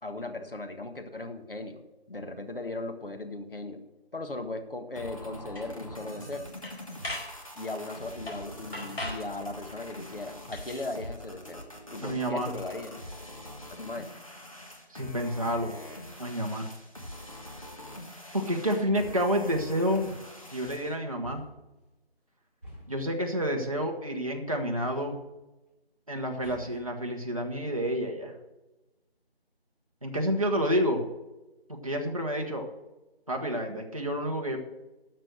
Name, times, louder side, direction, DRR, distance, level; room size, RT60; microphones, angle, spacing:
voice 1, 0.0-3.8 4.1-6.4 7.5-11.6 11.9-12.9 13.7-14.1, left 2 dB, 60° left, 7 dB, 1.6 m, -38 dB
sound 1, 5.0-21.0, left 1 dB, 35° left, 1.4 m, -44 dB
sound 2, 5.5-5.7 6.1-6.3 6.6-7.3 8.3-8.4 8.7-9.3 10.5-10.9, left 1 dB, 75° left, 4.6 m, -38 dB
voice 2, 12.0-12.5 14.9-15.7 16.2-16.7 18.3-20.1 20.5-21.4 22.9-25.2 26.1-28.3 30.0-31.0 31.7-32.7 33.3-34.6, equal, 35° right, 1 dB, 1.2 m, -29 dB
sound 3, 20.6-21.8 22.6-23.1 24.8-25.3 26.4-27.0, left 1 dB, 10° left, 1.7 m, -50 dB
12.5 x 6.8 x 6.3 m, 1.0 s
figure-of-eight pair, 180°, 31 cm